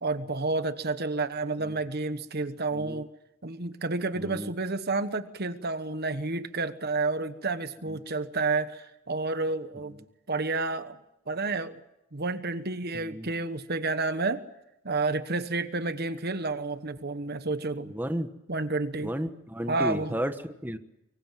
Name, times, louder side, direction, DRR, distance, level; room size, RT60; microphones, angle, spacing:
voice 1, 0.0-3.1 3.4-10.0 10.3-11.0 11.3-11.8 12.1-14.4 14.8-17.9 18.5-19.1 19.7-20.2, right 3 dB, 50° right, 11 dB, 1.3 m, -30 dB
voice 2, 4.2-4.5 7.9-8.0 12.9-13.3 17.8-18.3 19.0-20.8, equal, 10° right, 7 dB, 1.3 m, -33 dB
24.5 x 24.0 x 7.5 m, 0.87 s
head